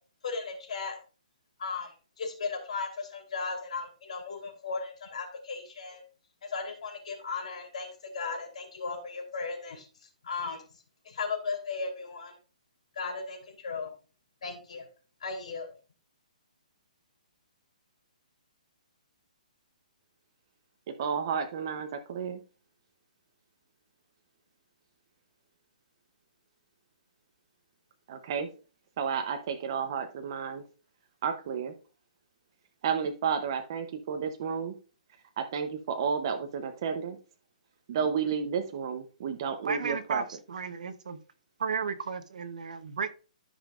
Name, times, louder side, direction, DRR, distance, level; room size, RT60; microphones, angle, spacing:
voice 1, 0.2-1.0 1.6-6.0 6.4-9.8 10.2-10.6 11.0-12.3 12.9-13.9 14.4-14.8 15.2-15.7, left 4 dB, 55° left, 3.3 m, -36 dB
voice 2, 21.0-22.4 28.1-28.5 29.0-30.6 31.2-31.7 32.8-34.7 35.4-37.2 37.9-40.2, right 6 dB, 30° right, 0.7 m, -31 dB
voice 3, 39.6-41.2 41.6-43.1, right 6 dB, 65° right, 0.9 m, -33 dB
13.5 x 5.4 x 2.5 m
hypercardioid pair, 175°, 4 cm